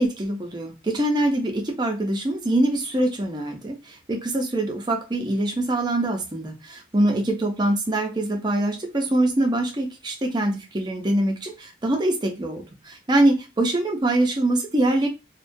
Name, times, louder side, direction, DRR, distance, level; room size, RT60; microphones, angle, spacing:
voice 1, 0.0-15.1, right 1 dB, 20° right, 0.5 m, -24 dB
2.3 x 2.2 x 2.6 m
head